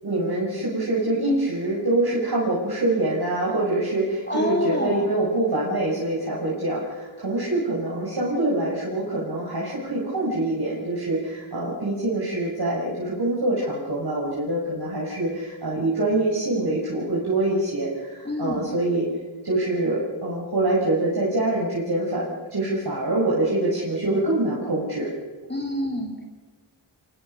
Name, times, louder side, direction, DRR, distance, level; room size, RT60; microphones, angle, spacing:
voice 1, 0.0-19.1 19.4-22.3 22.5-25.1, right 2 dB, 50° right, -6 dB, 5.9 m, -25 dB
voice 2, 4.3-5.1 18.2-18.7 25.5-26.2, left 1 dB, 20° left, 1 dB, 3.8 m, -27 dB
29.0 x 25.0 x 5.7 m, 1.4 s
wide cardioid pair, 70°, 48 cm